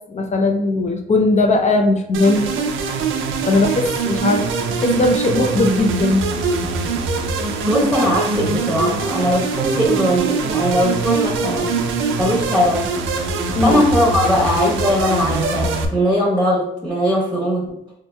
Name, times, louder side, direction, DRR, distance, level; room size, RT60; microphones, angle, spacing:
voice 1, 0.1-2.5 3.5-6.3 13.5-13.8, left 2 dB, 35° left, 3 dB, 0.5 m, -18 dB
sound 1, 2.1-15.9, right 4 dB, 85° right, 0.5 m, -23 dB
voice 2, 7.7-11.8 12.2-12.9 13.6-17.8, equal, ahead, -5 dB, 0.9 m, -19 dB
4.4 x 2.8 x 2.2 m, 0.85 s
cardioid pair, 90°, 20 cm